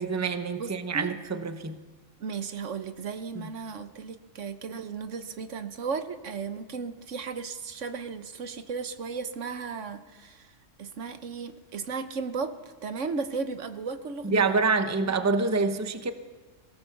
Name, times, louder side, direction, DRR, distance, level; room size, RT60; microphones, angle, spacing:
voice 1, 0.0-1.8 3.3-3.5 14.2-16.1, right 4 dB, 15° right, 9 dB, 0.8 m, -26 dB
voice 2, 0.6-1.1 2.2-10.5 10.8-12.5 12.8-14.6, right 5 dB, 70° right, 10 dB, 1.4 m, -35 dB
21.5 x 17.5 x 7.0 m, 1.3 s
omnidirectional pair, 1.3 m